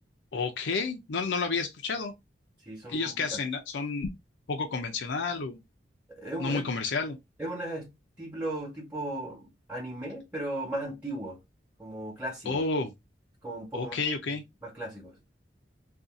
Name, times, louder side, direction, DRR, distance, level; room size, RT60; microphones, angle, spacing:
voice 1, 0.3-2.1 2.9-4.1 4.5-5.6 6.4-7.2 12.5-12.9 13.7-14.4, left 4 dB, 75° left, 0.5 m, -30 dB
voice 2, 2.6-3.4 6.2-6.6 7.4-7.9 8.2-11.4 11.8-12.6 13.4-13.9 14.6-15.2, right 1 dB, 10° right, 1.1 m, -36 dB
2.7 x 2.4 x 3.6 m
head